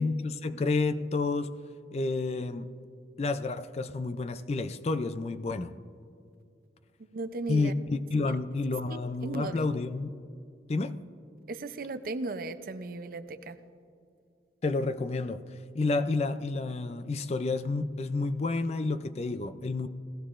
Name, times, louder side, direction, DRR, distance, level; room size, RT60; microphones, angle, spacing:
voice 1, 0.0-1.5 1.9-2.7 3.2-5.8 7.5-10.2 10.7-11.0 14.6-15.4 15.7-19.9, left 3 dB, 35° left, 0.3 m, -30 dB
voice 2, 7.1-7.7 8.3-8.4 8.9-9.5 11.5-13.6, right 2 dB, 50° right, 0.5 m, -36 dB
17.0 x 14.5 x 2.5 m
head